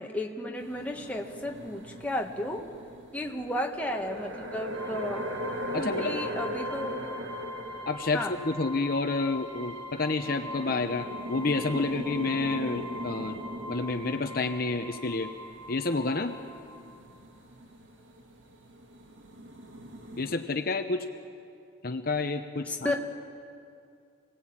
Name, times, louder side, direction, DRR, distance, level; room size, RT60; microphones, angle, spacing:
voice 1, 0.0-2.6 3.1-5.3 5.8-7.1 8.1-8.4 22.7-23.0, left 1 dB, 5° left, 1 dB, 1.5 m, -33 dB
sound 1, 0.6-8.9 9.7-9.8 10.0-20.4, equal, 65° right, 1.9 m, -40 dB
sound 2, 4.7-17.2, left 1 dB, 80° right, 2.4 m, -42 dB
voice 2, 5.7-6.2 7.9-13.4 13.7-15.3 15.7-16.3 20.2-21.1 21.8-23.0, left 3 dB, 45° left, 6 dB, 0.9 m, -29 dB
26.5 x 18.5 x 8.8 m, 2.4 s
head